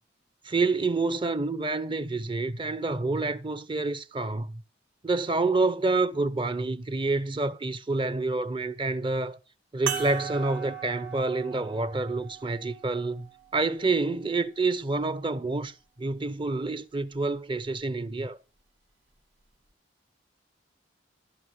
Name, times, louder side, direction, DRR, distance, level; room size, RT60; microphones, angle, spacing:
voice 1, 0.4-4.6 5.0-9.4 9.7-15.7 16.0-18.4, right 3 dB, 25° right, 0.7 m, -28 dB
sound 1, 9.9-14.7 15.4-15.5 17.7-17.8, right 8 dB, 75° right, 2.6 m, -39 dB
14.5 x 5.6 x 7.5 m
head